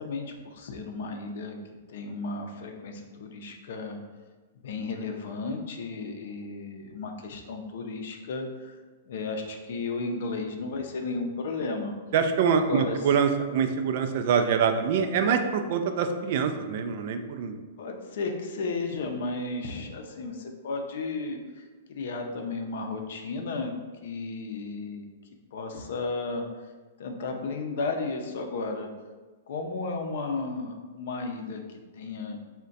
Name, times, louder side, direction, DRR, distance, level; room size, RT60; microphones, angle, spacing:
voice 1, 0.0-1.6 1.9-4.0 4.5-11.9 12.5-13.2 17.8-23.7 24.0-25.1 25.5-26.5 27.0-28.9 29.5-31.6 31.9-32.4, left 3 dB, 65° left, 4 dB, 0.5 m, -34 dB
voice 2, 12.1-17.6, right 6 dB, 55° right, 7 dB, 0.3 m, -25 dB
2.4 x 2.1 x 3.9 m, 1.3 s
hypercardioid pair, 140°, 0 cm